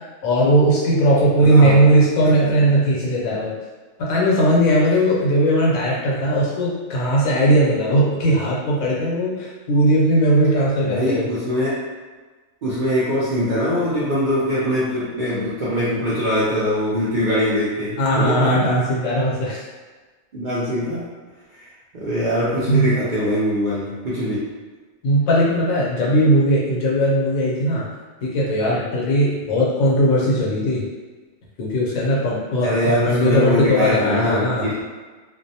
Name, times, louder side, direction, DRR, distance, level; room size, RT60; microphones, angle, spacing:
voice 1, 0.2-3.5 4.0-11.3 18.0-19.6 22.7-22.9 25.0-27.9 28.2-30.8 31.6-34.7, right 1 dB, 80° left, -5 dB, 1.1 m, -18 dB
voice 2, 1.4-1.8 2.2-2.5 10.8-11.8 12.6-18.7 20.3-21.1 21.5-21.7 21.9-24.4 32.6-34.8, equal, 65° right, -10 dB, 0.5 m, -22 dB
2.6 x 2.0 x 2.7 m, 1.3 s
omnidirectional pair, 1.4 m